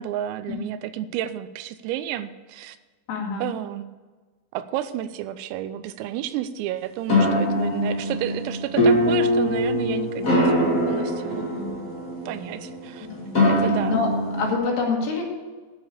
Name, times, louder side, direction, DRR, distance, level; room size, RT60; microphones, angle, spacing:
voice 1, 0.0-2.8 3.4-3.9 4.5-11.5 12.3-13.1 13.5-14.0, right 12 dB, 85° right, 12 dB, 3.3 m, -31 dB
voice 2, 3.1-3.5 11.5-11.8 13.0-13.3 13.9-14.1 14.4-15.2, left 4 dB, 70° left, 0 dB, 4.6 m, -26 dB
sound 1, 7.1-14.5, left 1 dB, 50° left, 1.0 m, -23 dB
10.5 x 7.2 x 8.2 m, 1.3 s
omnidirectional pair, 6.0 m